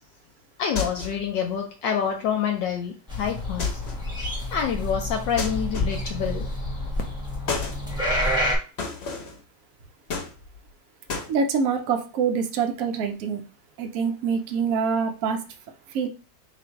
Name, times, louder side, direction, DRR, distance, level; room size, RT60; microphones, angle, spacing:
voice 1, 0.6-3.7 4.5-6.5, left 7 dB, 70° left, 3 dB, 1.2 m, -27 dB
sound 1, 0.8-1.3 3.6-4.1 5.4-6.2 7.5-7.8 8.8-9.4 10.1-10.7 11.1-11.3, left 4 dB, 45° left, 0.8 m, -31 dB
sound 2, 3.1-8.6, left 1 dB, 5° right, 0.7 m, -28 dB
voice 2, 11.3-13.4 13.8-15.4 15.9-16.1, right 5 dB, 75° right, 5 dB, 0.8 m, -25 dB
3.7 x 2.5 x 4.4 m, 0.34 s
omnidirectional pair, 2.2 m